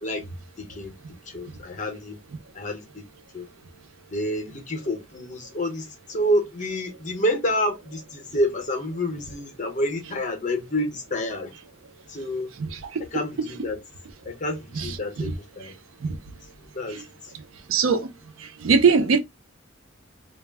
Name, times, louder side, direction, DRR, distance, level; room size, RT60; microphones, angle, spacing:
voice 1, 0.6-0.9 1.3-2.2 2.5-3.0 3.3-3.5 4.1-11.5 12.1-12.5 13.1-13.8 14.2-15.7 16.7-17.0, left 1 dB, 35° left, 0.7 m, -28 dB
voice 2, 12.6-13.0 14.8-15.3 16.0-16.2 16.9-17.0 17.7-18.1 18.6-19.2, right 5 dB, 90° right, 0.5 m, -22 dB
2.3 x 2.0 x 3.3 m
head